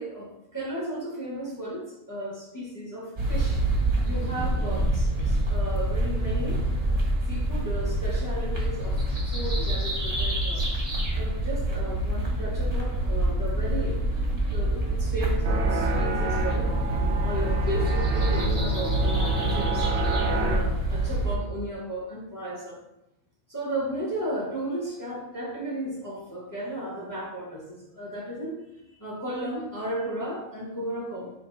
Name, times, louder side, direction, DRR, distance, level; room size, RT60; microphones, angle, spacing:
voice 1, 0.0-3.6 4.1-6.6 7.3-9.0 9.3-10.6 11.1-14.0 14.5-16.7 17.2-19.9 20.2-22.8 23.5-31.3, right 1 dB, 15° left, -5 dB, 1.5 m, -34 dB
sound 1, 3.2-21.3, right 1 dB, 25° right, 1.3 m, -26 dB
sound 2, 15.4-20.6, right 3 dB, 50° right, 1.2 m, -31 dB
7.7 x 3.2 x 4.1 m, 0.90 s
omnidirectional pair, 1.6 m